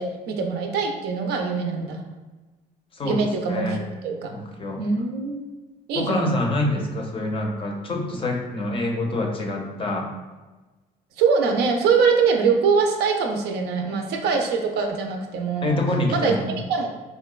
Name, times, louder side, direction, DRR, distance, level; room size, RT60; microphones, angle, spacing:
voice 1, 0.0-2.0 3.0-3.8 4.0-4.3 4.8-5.4 5.9-6.3 11.2-15.8 16.1-16.9, right 5 dB, 75° right, 3 dB, 0.5 m, -23 dB
voice 2, 2.9-3.8 4.3-4.8 5.9-10.1 15.6-16.5, left 1 dB, 30° left, 1 dB, 0.5 m, -26 dB
3.7 x 2.1 x 2.3 m, 1.2 s
cardioid pair, 110°, 17 cm